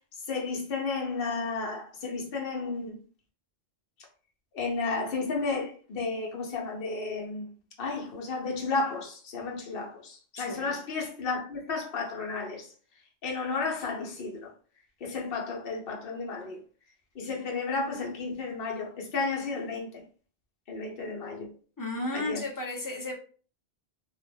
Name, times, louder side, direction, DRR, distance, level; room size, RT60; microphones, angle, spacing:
voice 1, 0.3-3.0 4.5-7.5 7.8-12.7 13.2-14.5 15.0-16.6 17.1-19.9 20.7-21.5 22.1-22.4, left 4 dB, 65° left, 0.9 m, -33 dB
voice 2, 10.3-10.7 21.8-23.1, left 2 dB, 25° left, 0.6 m, -34 dB
2.4 x 2.1 x 3.3 m
omnidirectional pair, 1.0 m